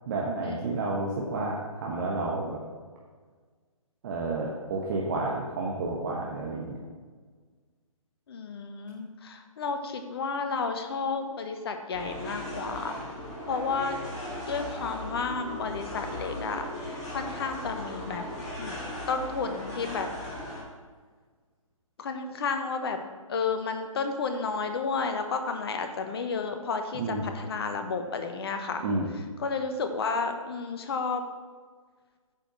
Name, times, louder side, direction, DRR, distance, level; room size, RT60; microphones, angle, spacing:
voice 1, 0.1-2.6 4.0-6.8 26.9-27.3 28.8-29.1, right 2 dB, 35° right, -3 dB, 1.2 m, -30 dB
voice 2, 8.3-13.0 13.5-14.0 14.5-18.2 18.6-20.1 22.0-23.0 23.3-28.8 29.4-31.2, left 4 dB, 45° left, 6 dB, 1.0 m, -32 dB
sound 1, 11.9-20.6, left 1 dB, 15° left, 2.6 m, -38 dB
8.9 x 5.0 x 6.1 m, 1.5 s
figure-of-eight pair, 140°, 18 cm